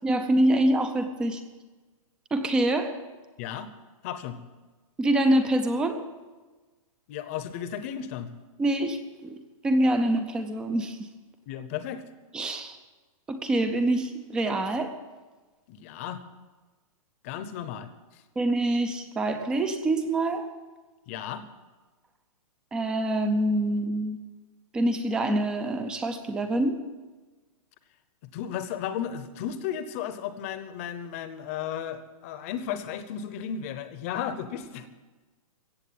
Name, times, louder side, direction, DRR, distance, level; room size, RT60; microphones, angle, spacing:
voice 1, 0.0-1.4 2.3-3.0 5.0-6.0 8.6-11.1 12.3-12.8 13.3-14.9 18.4-20.5 22.7-24.2 24.7-26.8, right 1 dB, 5° right, 8 dB, 0.4 m, -25 dB
voice 2, 3.4-3.7 4.0-4.4 7.1-8.3 11.5-12.0 15.7-16.2 17.2-18.2 21.1-21.4 28.3-34.9, left 9 dB, 25° left, 12 dB, 0.8 m, -34 dB
16.0 x 7.7 x 9.4 m, 1.3 s
hypercardioid pair, 175°, 18 cm